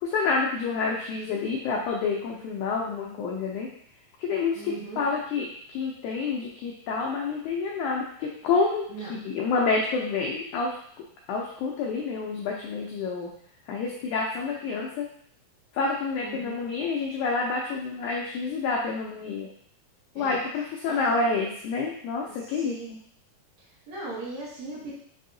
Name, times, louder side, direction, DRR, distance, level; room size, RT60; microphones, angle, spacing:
voice 1, 0.0-3.7 4.2-5.5 5.7-8.8 9.1-10.7 11.3-13.3 13.7-15.1 15.7-19.5 20.2-22.7, left 4 dB, 85° left, -2 dB, 1.7 m, -28 dB
voice 2, 4.5-5.1 8.9-9.1 16.2-16.6 20.2-20.4 20.8-21.1 22.4-22.9 23.9-24.9, right 2 dB, 65° right, -8 dB, 2.0 m, -38 dB
5.5 x 2.7 x 2.6 m, 0.63 s
omnidirectional pair, 4.1 m